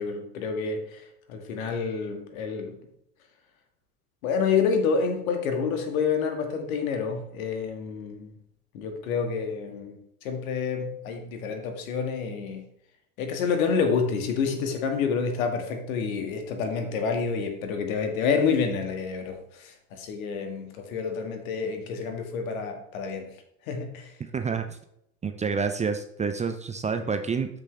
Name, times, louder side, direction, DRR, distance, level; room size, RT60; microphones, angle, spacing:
voice 1, 0.0-2.8 4.2-8.3 8.7-12.7 13.2-23.4 23.7-24.1 27.0-27.1, left 5 dB, 60° left, 5 dB, 2.1 m, -28 dB
voice 2, 24.3-24.8 25.2-27.5, right 5 dB, 15° right, 7 dB, 0.7 m, -28 dB
13.0 x 6.7 x 3.4 m, 0.75 s
figure-of-eight pair, 70°, 46 cm